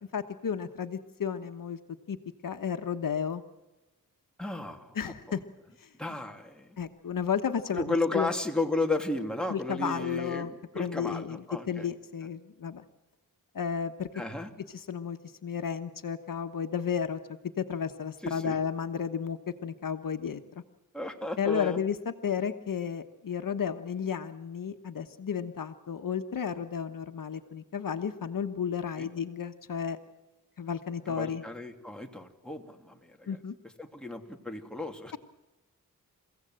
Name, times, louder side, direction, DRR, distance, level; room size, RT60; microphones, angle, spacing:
voice 1, 0.1-1.8 2.1-2.2 2.4-3.4 4.9-5.4 5.8-5.9 6.8-8.3 9.5-10.5 10.8-12.8 13.5-14.1 14.7-17.2 17.6-20.6 21.4-30.0 30.6-31.4 33.3-33.5, left 7 dB, 75° left, 8 dB, 1.3 m, -33 dB
voice 2, 4.4-5.1 6.0-6.8 7.7-11.9 14.1-14.5 18.2-18.6 20.9-21.8 29.0-29.1 31.1-33.4 33.8-35.2, left 2 dB, ahead, 2 dB, 2.9 m, -34 dB
29.5 x 16.5 x 7.8 m, 1.1 s
wide cardioid pair, 90°, 33 cm